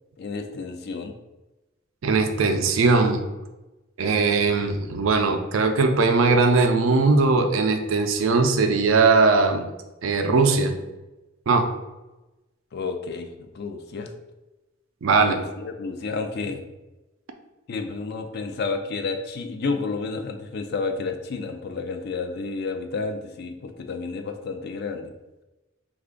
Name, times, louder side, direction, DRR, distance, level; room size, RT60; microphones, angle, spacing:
voice 1, 0.2-1.1 12.7-14.1 15.2-16.6 17.7-25.1, left 4 dB, 55° left, 6 dB, 0.4 m, -31 dB
voice 2, 2.0-3.2 4.0-9.7 10.0-10.7 11.5-11.7 15.0-15.3, right 4 dB, 90° right, 6 dB, 0.4 m, -20 dB
3.2 x 2.4 x 3.7 m, 1.1 s
head